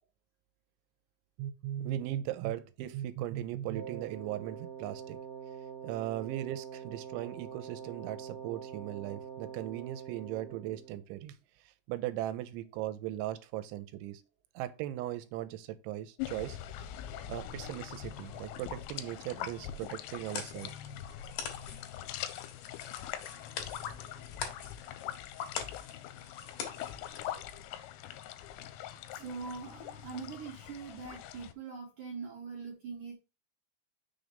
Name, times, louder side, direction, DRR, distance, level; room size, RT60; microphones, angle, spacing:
voice 1, 1.4-5.2 5.8-11.4 11.9-14.2 14.6-16.6 17.3-20.7 24.1-24.2, right 13 dB, 85° right, 3.0 m, -38 dB
Wind instrument woodwind instrument, 3.7-11.0, right 8 dB, 45° right, 1.1 m, -45 dB
sound 1, 16.2-31.5, left 11 dB, 85° left, 2.9 m, -43 dB
sound 2, 19.7-27.3, left 7 dB, 65° left, 2.4 m, -44 dB
voice 2, 29.1-33.1, right 5 dB, 70° right, 2.0 m, -42 dB
6.4 x 3.9 x 5.2 m
omnidirectional pair, 5.3 m